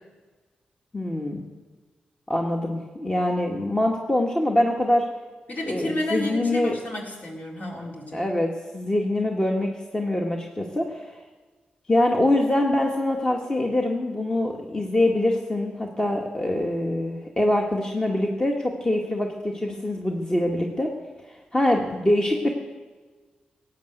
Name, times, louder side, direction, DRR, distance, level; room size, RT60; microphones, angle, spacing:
voice 1, 0.9-1.4 2.3-5.1 5.7-6.8 8.1-11.1 11.9-20.9 21.5-22.5, left 1 dB, 25° left, 0 dB, 1.8 m, -24 dB
voice 2, 5.5-8.2, left 1 dB, 55° left, -1 dB, 4.0 m, -31 dB
16.5 x 9.3 x 8.0 m, 1.4 s
cardioid pair, 55°, 3 cm